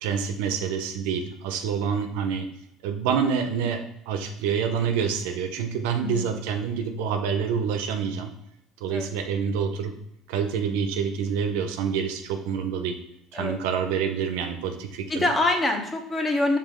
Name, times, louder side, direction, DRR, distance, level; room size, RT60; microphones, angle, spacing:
voice 1, 0.0-2.5 2.8-8.3 8.8-9.9 10.3-13.0 13.3-15.3, right 6 dB, 85° right, 6 dB, 0.5 m, -27 dB
voice 2, 6.0-6.4 8.9-9.1 13.3-13.6 15.1-16.6, left 2 dB, 20° left, 4 dB, 0.7 m, -25 dB
5.0 x 2.4 x 3.6 m, 0.76 s
supercardioid pair, 100°, 0 cm